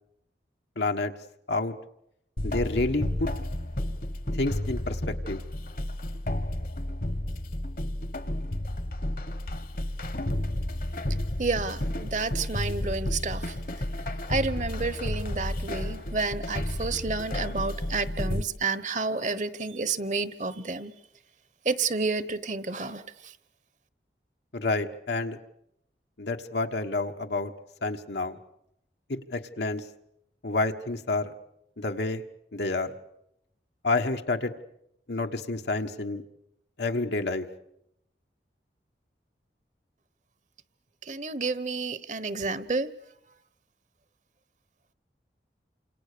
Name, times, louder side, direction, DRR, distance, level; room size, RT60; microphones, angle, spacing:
voice 1, 0.8-1.1 1.5-1.7 2.4-3.3 4.3-5.4 24.5-25.4 26.2-27.5 27.8-28.4 29.1-29.9 30.4-31.3 31.8-32.2 32.5-32.9 33.8-34.5 35.1-36.2 36.8-37.5, left 2 dB, 80° left, 4 dB, 1.5 m, -29 dB
sound 1, 2.4-18.4, left 1 dB, 50° left, 1.3 m, -32 dB
voice 2, 11.4-13.5 14.3-20.9 21.6-23.0 41.1-42.9, right 4 dB, 45° right, 16 dB, 1.1 m, -30 dB
29.0 x 27.0 x 6.8 m, 0.78 s
head